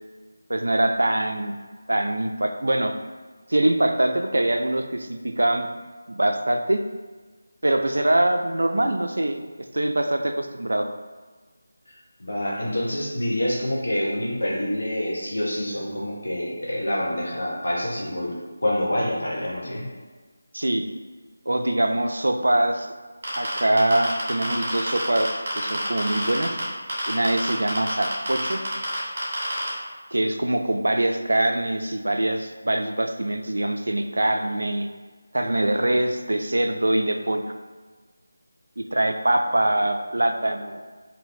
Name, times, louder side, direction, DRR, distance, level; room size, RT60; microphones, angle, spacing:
voice 1, 0.5-1.6 1.9-2.9 3.5-5.7 6.1-6.8 7.6-9.4 9.7-10.9 20.5-20.9 21.5-22.9 23.4-26.6 27.1-28.6 30.1-34.9 35.3-37.5 38.8-40.8, right 1 dB, 85° right, 6 dB, 0.3 m, -23 dB
voice 2, 12.2-18.3 18.6-19.9, left 1 dB, 75° left, -5 dB, 0.8 m, -27 dB
sound 1, 23.2-26.6 26.9-29.7, right 1 dB, 45° right, 1.4 m, -28 dB
3.3 x 2.6 x 2.6 m, 1.4 s
figure-of-eight pair, 165°, 0 cm